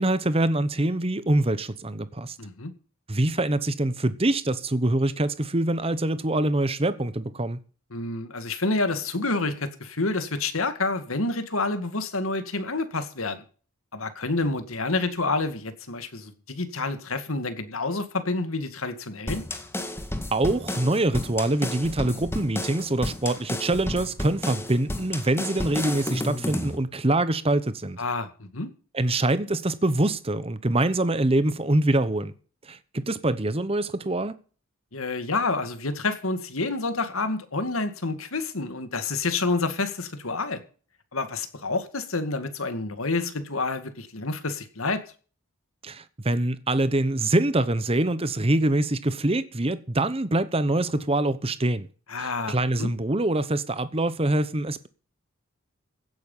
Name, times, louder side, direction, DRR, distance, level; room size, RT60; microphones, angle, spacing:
voice 1, 0.0-2.4 3.1-7.6 20.3-28.0 28.9-32.3 32.7-34.3 45.8-51.9 52.2-54.9, right 1 dB, 25° right, 1.0 m, -24 dB
voice 2, 2.4-2.7 7.9-13.4 13.9-19.4 28.0-28.7 34.9-40.6 41.1-45.0 52.1-52.9, left 3 dB, 75° left, 2.1 m, -28 dB
sound 1, 19.3-26.8, left 1 dB, 10° left, 1.8 m, -32 dB
16.5 x 9.5 x 5.6 m
head